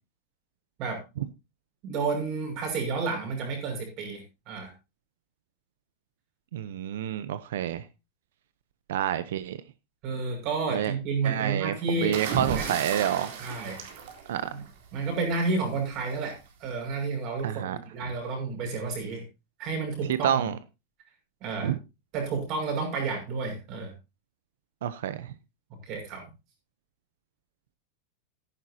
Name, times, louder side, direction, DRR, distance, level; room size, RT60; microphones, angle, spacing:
voice 1, 1.8-4.7 10.0-12.2 12.5-12.6 13.4-13.8 14.5-14.6 14.9-19.2 19.6-20.4 21.4-21.7 22.1-23.9 25.8-26.2, right 4 dB, 35° right, 6.2 m, -31 dB
voice 2, 6.5-7.8 8.9-9.6 10.7-10.9 11.2-13.3 14.3-14.5 17.4-17.8 20.2-20.6 21.6-21.8 24.8-25.3, right 10 dB, 85° right, 0.8 m, -28 dB
sound 1, 12.1-14.9 16.1-16.4, right 6 dB, 55° right, 3.7 m, -33 dB
14.0 x 11.0 x 2.8 m
supercardioid pair, 175°, 0 cm